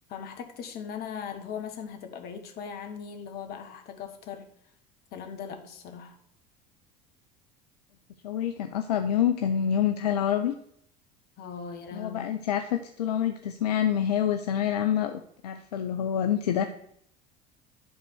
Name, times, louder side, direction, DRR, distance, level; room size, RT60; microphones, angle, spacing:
voice 1, 0.1-4.5 5.1-6.2 11.4-12.2, left 7 dB, 50° left, 5 dB, 1.6 m, -39 dB
voice 2, 8.2-10.5 11.9-16.7, left 9 dB, 70° left, 7 dB, 0.6 m, -27 dB
11.0 x 4.0 x 6.3 m, 0.68 s
figure-of-eight pair, 70°, 21 cm